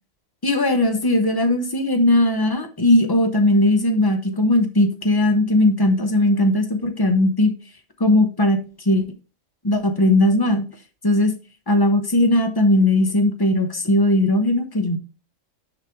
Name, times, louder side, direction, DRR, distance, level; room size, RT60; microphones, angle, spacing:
voice 1, 0.4-7.6 8.0-9.0 9.6-10.7 11.0-11.3 11.7-15.0, left 1 dB, 20° left, 7 dB, 0.7 m, -18 dB
6.5 x 5.0 x 3.4 m, 0.32 s
omnidirectional pair, 1.4 m